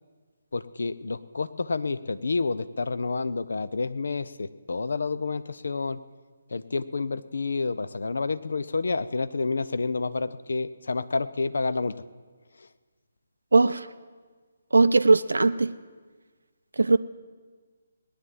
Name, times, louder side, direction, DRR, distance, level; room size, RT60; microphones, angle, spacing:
voice 1, 0.5-6.0 6.5-11.9, left 4 dB, 65° left, 14 dB, 0.7 m, -29 dB
voice 2, 13.5-13.9 14.7-15.7 16.8-17.0, right 3 dB, 70° right, 11 dB, 0.5 m, -19 dB
18.5 x 10.0 x 7.6 m, 1.5 s
figure-of-eight pair, 145°, 0 cm